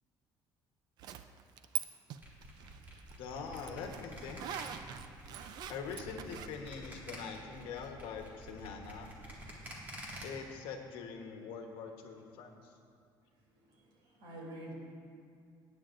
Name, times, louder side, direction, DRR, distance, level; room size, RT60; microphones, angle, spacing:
Zipper (clothing), 1.0-1.8 2.1-6.5, right 9 dB, 55° right, 0.4 m, -43 dB
sound 1, 2.2-10.2, right 1 dB, 20° right, 1.9 m, -48 dB
voice 1, 3.2-4.7 5.7-9.1 10.2-12.7, left 6 dB, 90° left, 3 dB, 1.1 m, -44 dB
voice 2, 13.4-14.7, right 1 dB, 80° right, -2 dB, 2.8 m, -48 dB
18.0 x 9.2 x 2.5 m, 2.3 s
cardioid pair, 170°, 9 cm